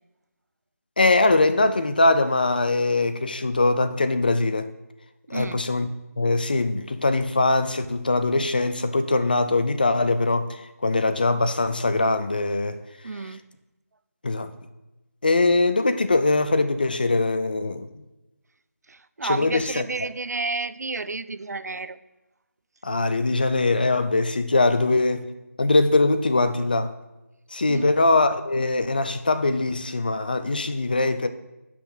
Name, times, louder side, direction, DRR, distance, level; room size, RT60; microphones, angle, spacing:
voice 1, 1.0-4.7 5.3-5.9 6.2-12.8 14.2-14.5 15.2-17.9 19.2-19.8 22.8-25.3 25.6-26.9 27.5-31.3, left 2 dB, 35° left, 0.4 m, -22 dB
voice 2, 5.3-5.6 13.0-13.4 18.9-22.0 27.7-27.9, right 3 dB, 80° right, 0.5 m, -31 dB
11.5 x 5.9 x 2.6 m
figure-of-eight pair, 170°, 9 cm